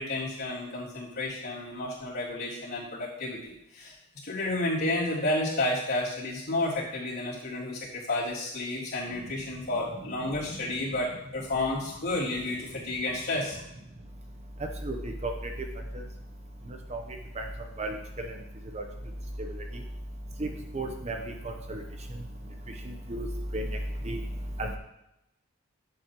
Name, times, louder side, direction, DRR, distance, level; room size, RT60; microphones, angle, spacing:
voice 1, 0.0-4.0 4.2-13.6, left 2 dB, 50° left, -8 dB, 3.5 m, -31 dB
voice 2, 17.8-18.3 18.7-18.8 20.4-20.5 20.7-21.2 21.4-21.8 23.1-23.3 23.5-23.7 24.0-24.2 24.6-24.8, right 2 dB, 30° right, 3 dB, 0.8 m, -33 dB
11.0 x 7.8 x 3.0 m, 0.86 s
head